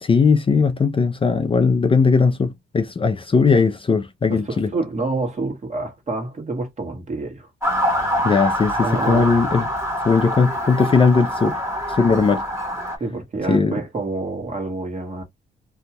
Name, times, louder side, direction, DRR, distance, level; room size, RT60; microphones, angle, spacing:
voice 1, 0.0-4.7 8.2-9.6 10.0-11.5 11.9-12.4 13.5-13.7, left 5 dB, 30° left, 0.5 m, -18 dB
voice 2, 4.3-7.5 8.8-9.4 12.1-12.2 13.0-15.2, right 3 dB, 40° right, 1.3 m, -28 dB
Motor vehicle (road) / Siren, 7.6-13.0, equal, 15° right, 1.2 m, -25 dB
2.7 x 2.3 x 2.9 m
cardioid pair, 80°, 18 cm